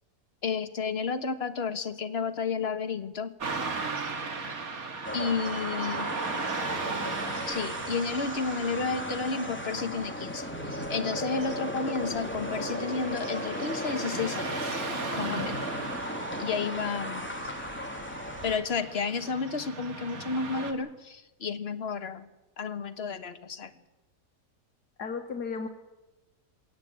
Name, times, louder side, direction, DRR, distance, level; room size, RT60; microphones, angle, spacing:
voice 1, 0.4-3.3 5.1-6.2 7.5-14.8 15.1-15.6 16.4-17.4 18.4-22.3 22.6-23.7, left 5 dB, 40° left, 9 dB, 1.5 m, -32 dB
Car passing by / Traffic noise roadway noise, 3.4-20.7, right 4 dB, 60° right, 2.4 m, -37 dB
sound 1, 5.0-18.6, equal, 5° left, 2.6 m, -36 dB
sound 2, 10.5-17.0, right 2 dB, 80° right, 8.5 m, -49 dB
voice 2, 15.2-15.8 25.0-25.7, left 5 dB, 80° left, 5 dB, 2.0 m, -36 dB
22.0 x 17.5 x 8.8 m, 1.1 s
omnidirectional pair, 1.7 m